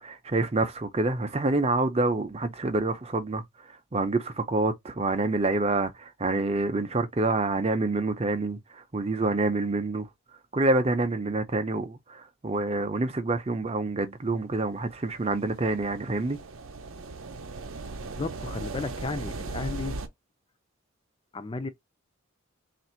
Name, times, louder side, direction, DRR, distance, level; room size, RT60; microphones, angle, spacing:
voice 1, 0.0-3.4 3.7-10.1 10.5-16.4, right 2 dB, 30° right, 0.5 m, -27 dB
sound 1, 14.8-20.1, right 3 dB, 65° right, 0.6 m, -38 dB
voice 2, 18.2-20.0 21.3-21.7, left 3 dB, 25° left, 0.4 m, -33 dB
3.4 x 2.5 x 4.3 m
head